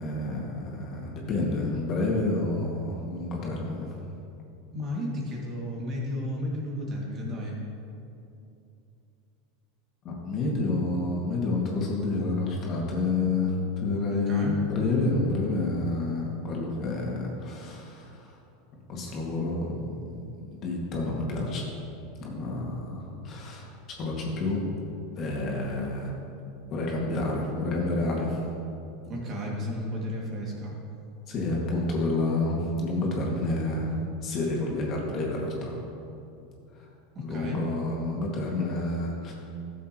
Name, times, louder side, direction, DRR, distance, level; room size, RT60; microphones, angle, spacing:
voice 1, 0.0-3.9 10.0-18.4 18.9-21.7 22.2-23.7 24.0-24.6 25.2-26.1 26.7-28.4 31.3-33.9 34.2-35.8 36.8-36.9 37.2-39.3, left 2 dB, 45° left, -2 dB, 2.2 m, -29 dB
voice 2, 4.7-7.6 14.1-14.6 29.1-30.7 37.1-37.6, left 1 dB, 40° right, -2 dB, 2.3 m, -33 dB
13.0 x 7.3 x 3.1 m, 2.7 s
hypercardioid pair, 95°, 0 cm